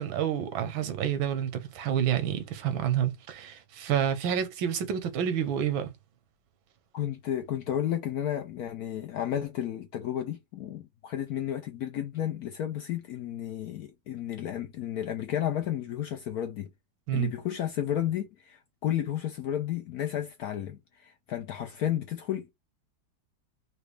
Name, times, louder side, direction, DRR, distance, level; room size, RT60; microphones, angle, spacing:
voice 1, 0.0-5.9 17.1-17.3, right 9 dB, 85° right, 1.6 m, -29 dB
voice 2, 6.9-16.7 17.1-22.5, left 11 dB, 70° left, 0.9 m, -32 dB
4.9 x 2.3 x 3.2 m
omnidirectional pair, 2.1 m